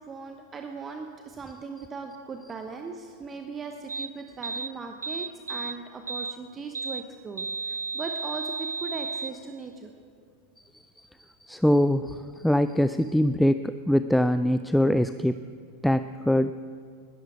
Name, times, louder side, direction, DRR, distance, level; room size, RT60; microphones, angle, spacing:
voice 1, 0.1-9.9, right 4 dB, 20° right, 5 dB, 0.9 m, -39 dB
sound 1, 3.9-4.1 4.4-4.7 5.0-5.8 6.1-6.3 6.7-7.0 7.4-9.3, right 4 dB, 75° right, 0.4 m, -33 dB
voice 2, 11.4-12.2 12.4-15.4 15.8-16.5, left 1 dB, ahead, 12 dB, 0.3 m, -23 dB
20.0 x 13.5 x 4.9 m, 2.2 s
figure-of-eight pair, 90°, 0 cm